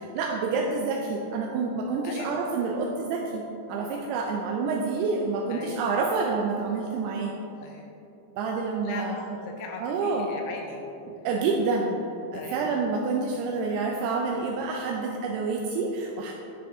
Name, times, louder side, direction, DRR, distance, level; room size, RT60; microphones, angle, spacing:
voice 1, 0.1-3.4 3.7-7.3 8.4-9.2 9.8-10.3 11.2-12.0 12.3-16.3, right 4 dB, 80° right, 1 dB, 2.6 m, -28 dB
voice 2, 2.0-2.5 5.5-5.8 7.6-7.9 8.8-10.9 12.3-12.8, left 5 dB, 80° left, 2 dB, 2.5 m, -39 dB
10.0 x 6.9 x 3.6 m, 2.9 s
omnidirectional pair, 4.8 m